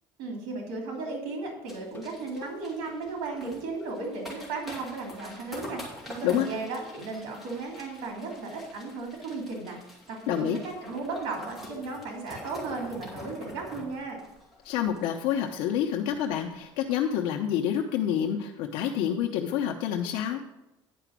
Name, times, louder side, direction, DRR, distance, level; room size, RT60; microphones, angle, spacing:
voice 1, 0.2-9.8 10.1-14.2, right 3 dB, 85° right, 0 dB, 2.8 m, -35 dB
sound 1, 1.7-15.5 15.8-15.9 16.1-16.4 16.8-17.0, left 1 dB, ahead, 2.5 m, -46 dB
sound 2, 1.8-4.4 4.7-4.8 5.2-5.3 5.7-5.8, left 4 dB, 20° left, 0.7 m, -53 dB
voice 2, 10.3-10.6 14.6-20.4, left 9 dB, 75° left, 2 dB, 0.8 m, -28 dB
10.0 x 5.0 x 6.0 m, 0.95 s
cardioid pair, 160°, 10 cm